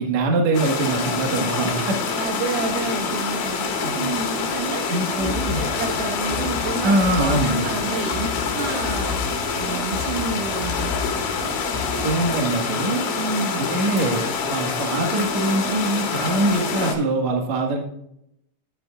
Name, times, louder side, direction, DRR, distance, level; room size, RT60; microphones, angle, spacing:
voice 1, 0.0-2.0 3.8-4.1 4.9-5.6 6.8-7.7 12.0-13.0 13.5-17.8, right 2 dB, 60° right, 2 dB, 1.9 m, -23 dB
sound 1, 0.5-16.9, left 5 dB, 60° left, 2.9 m, -26 dB
Acoustic guitar, 1.1-17.1, left 1 dB, 30° left, 4.3 m, -41 dB
voice 2, 2.2-9.2 9.6-11.0 13.1-13.6, right 4 dB, 90° right, 3 dB, 4.1 m, -30 dB
sound 2, 5.2-12.4, left 6 dB, 75° left, 3.0 m, -33 dB
12.5 x 8.7 x 2.4 m, 0.76 s
omnidirectional pair, 5.7 m